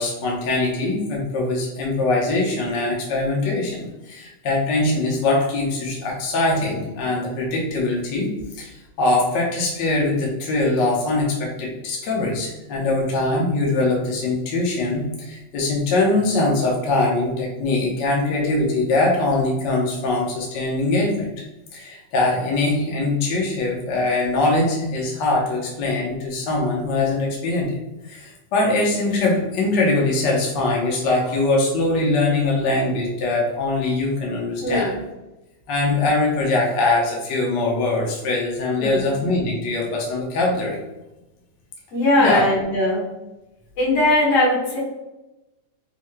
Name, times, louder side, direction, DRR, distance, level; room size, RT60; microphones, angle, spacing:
voice 1, 0.0-21.3 21.7-27.8 28.1-34.9 35.7-40.8 42.2-42.5, left 2 dB, 85° left, -2 dB, 0.9 m, -22 dB
voice 2, 34.6-35.0 38.8-39.2 41.9-43.0 43.8-44.8, left 1 dB, 55° left, -5 dB, 2.4 m, -20 dB
6.0 x 3.2 x 2.2 m, 0.97 s
omnidirectional pair, 3.5 m